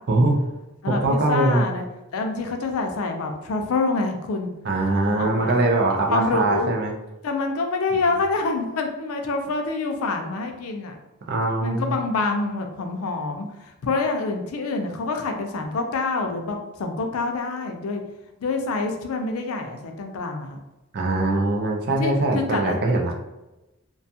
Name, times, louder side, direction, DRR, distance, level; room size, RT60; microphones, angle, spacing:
voice 1, 0.1-0.4 0.9-1.6 4.6-6.9 11.3-11.9 20.9-23.1, right 2 dB, 50° right, 1 dB, 0.5 m, -22 dB
voice 2, 0.8-1.8 2.1-4.5 5.1-5.6 6.1-6.7 7.2-11.0 11.6-18.0 18.4-20.6 22.0-22.8, left 3 dB, 85° left, 4 dB, 0.4 m, -26 dB
2.5 x 2.3 x 2.7 m, 0.98 s
head